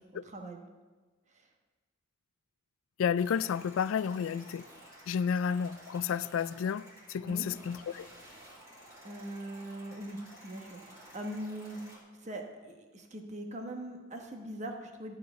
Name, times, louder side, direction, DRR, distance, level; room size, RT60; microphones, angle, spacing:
voice 1, 0.2-0.7 1.3-1.5 7.2-7.4 9.0-11.8 12.2-15.1, right 1 dB, 35° right, 3 dB, 1.1 m, -41 dB
voice 2, 3.0-4.7 5.1-8.1, left 7 dB, 90° left, 18 dB, 0.3 m, -31 dB
sound 1, 3.2-12.0, right 1 dB, 15° right, 2.1 m, -53 dB
12.5 x 4.8 x 6.7 m, 1.3 s
head